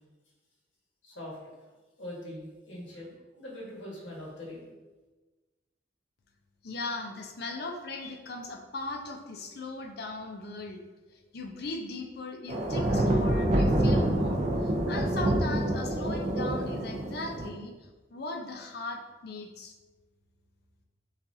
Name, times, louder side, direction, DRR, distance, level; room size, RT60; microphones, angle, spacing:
voice 1, 1.0-1.7 2.0-4.7, left 1 dB, 85° left, -4 dB, 1.4 m, -42 dB
voice 2, 6.6-10.8 11.1-17.7 18.1-19.7, left 3 dB, 60° left, 4 dB, 0.5 m, -38 dB
sound 1, 12.5-17.5, right 1 dB, 40° right, 0.5 m, -27 dB
6.9 x 2.4 x 2.7 m, 1.3 s
head